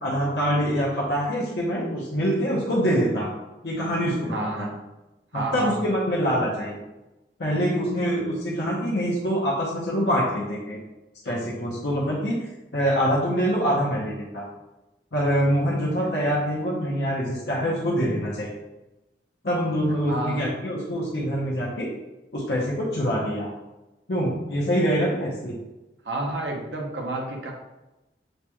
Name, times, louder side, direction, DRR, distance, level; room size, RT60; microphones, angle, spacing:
voice 1, 0.0-3.3 3.6-4.7 5.3-6.8 7.4-10.8 11.2-12.4 12.7-14.5 15.1-18.5 19.4-21.9 22.3-23.5 24.1-25.6, equal, 70° left, -5 dB, 0.8 m, -25 dB
voice 2, 4.3-4.7 5.3-5.9 20.1-20.5 26.0-27.5, right 2 dB, 80° right, 0 dB, 0.9 m, -30 dB
6.5 x 2.9 x 2.3 m, 1.0 s
head